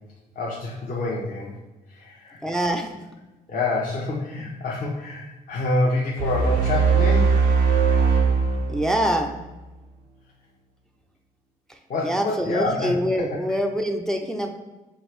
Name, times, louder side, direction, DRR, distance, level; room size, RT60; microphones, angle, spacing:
voice 1, 0.3-1.5 1.9-2.4 3.5-7.4 11.9-12.9 13.2-13.4, left 2 dB, 45° left, -4 dB, 0.8 m, -27 dB
voice 2, 2.4-3.0 8.7-9.3 11.7-11.8 12.0-14.5, equal, 5° left, 3 dB, 0.5 m, -25 dB
sound 1, 6.2-9.5, right 5 dB, 85° right, 0.7 m, -20 dB
4.6 x 2.5 x 3.2 m, 1.1 s
hypercardioid pair, 55°, 20 cm